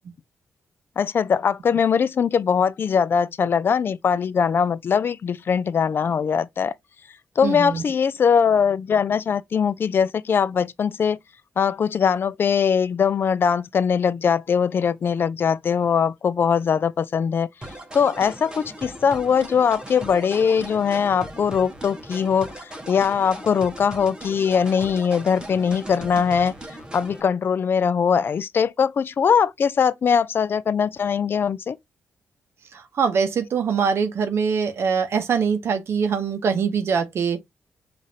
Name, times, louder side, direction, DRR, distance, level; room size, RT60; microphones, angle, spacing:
voice 1, 1.0-6.7 7.4-11.2 11.6-17.5 17.9-26.5 26.9-31.8, left 7 dB, 55° left, 0.4 m, -21 dB
voice 2, 7.4-7.8 32.7-37.4, right 6 dB, 65° right, 0.7 m, -23 dB
sound 1, 17.6-27.2, right 1 dB, 20° right, 0.9 m, -38 dB
5.0 x 2.5 x 2.7 m
cardioid pair, 75°, 5 cm